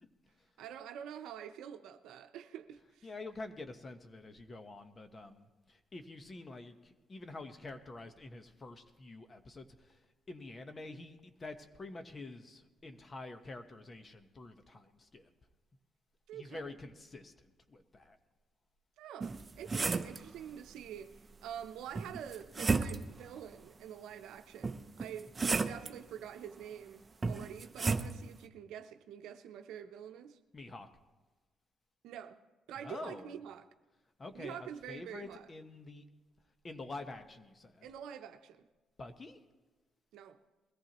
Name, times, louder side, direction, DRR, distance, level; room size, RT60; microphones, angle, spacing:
voice 1, 0.6-3.1 16.3-16.8 19.0-21.1 21.4-25.3 25.6-30.4 32.0-32.4 32.7-33.7 34.3-35.5 37.8-38.7 40.1-40.4, right 9 dB, 85° right, 0.7 m, -47 dB
voice 2, 3.0-10.0 10.3-15.3 16.3-18.2 30.5-30.9 32.8-33.4 34.2-36.0 36.6-37.9 39.0-39.4, left 2 dB, 35° left, 1.1 m, -47 dB
sound 1, 19.2-20.2 21.9-23.2 24.6-25.9 27.2-28.1, right 4 dB, 30° right, 0.7 m, -33 dB
21.5 x 14.5 x 3.0 m
cardioid pair, 85°, 0 cm